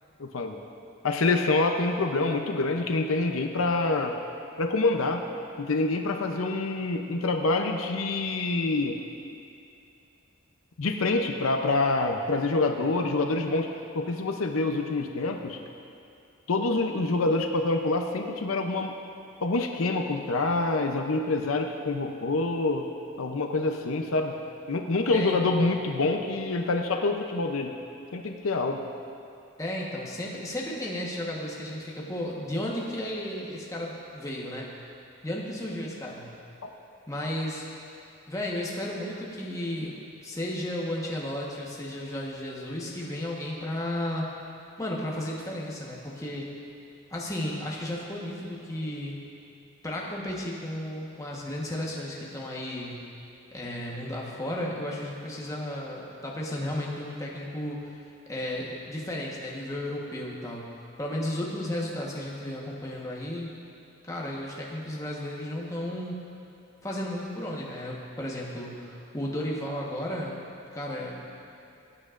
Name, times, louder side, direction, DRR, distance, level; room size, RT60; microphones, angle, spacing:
voice 1, 0.2-0.6 1.0-4.1 4.6-5.2 5.6-9.0 10.8-13.7 13.9-15.6 16.5-18.9 19.4-22.8 23.2-24.3 24.7-27.7 28.1-28.8 36.6-36.7, left 3 dB, 80° left, 4 dB, 0.6 m, -26 dB
voice 2, 25.0-25.6 29.6-34.7 35.2-36.3 37.1-37.6 38.3-39.9 40.2-44.3 44.8-46.5 47.1-49.2 49.8-53.0 53.5-57.9 58.3-63.5 64.0-66.2 66.8-70.4 70.7-71.2, left 1 dB, 15° left, -4 dB, 1.2 m, -34 dB
18.5 x 8.5 x 2.5 m, 2.6 s
head